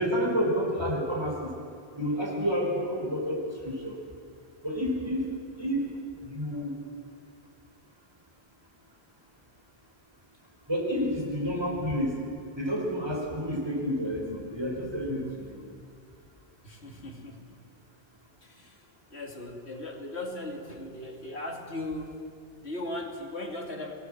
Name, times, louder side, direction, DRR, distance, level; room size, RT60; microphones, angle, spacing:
voice 1, 0.0-1.4 2.0-4.0 4.6-5.2 5.6-5.9 6.2-6.7 10.7-12.2 12.6-15.6, equal, 25° right, -1 dB, 4.8 m, -29 dB
voice 2, 16.6-17.6 18.4-18.8 19.1-22.2 22.6-23.9, left 1 dB, 80° left, 1 dB, 2.9 m, -38 dB
26.0 x 18.5 x 7.9 m, 2.3 s
omnidirectional pair, 1.1 m